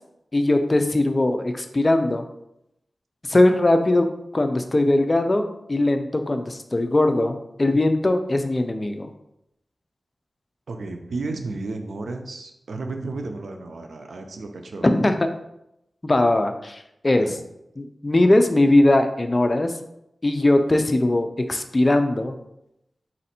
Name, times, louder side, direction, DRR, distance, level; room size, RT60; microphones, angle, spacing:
voice 1, 0.3-2.2 3.3-4.1 4.3-9.1 14.8-15.1 16.0-17.3 17.8-19.7 20.2-22.4, left 1 dB, 35° left, 7 dB, 0.5 m, -20 dB
voice 2, 10.7-14.9 17.2-17.4, right 3 dB, 90° right, 5 dB, 0.5 m, -33 dB
4.2 x 2.6 x 4.2 m, 0.83 s
wide cardioid pair, 65°, 0 cm